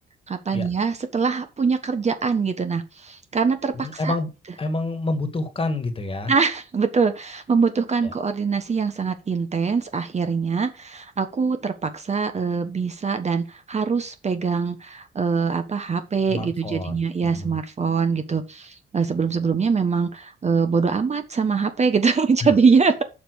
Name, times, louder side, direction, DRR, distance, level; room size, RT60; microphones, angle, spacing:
voice 1, 0.3-4.1 6.3-23.0, right 5 dB, 35° right, 1.2 m, -23 dB
voice 2, 3.7-4.3 4.6-6.3 8.0-8.1 16.3-17.6 22.4-22.5, left 2 dB, 25° left, 1.9 m, -28 dB
7.0 x 5.4 x 6.4 m
cardioid pair, 90°, 20 cm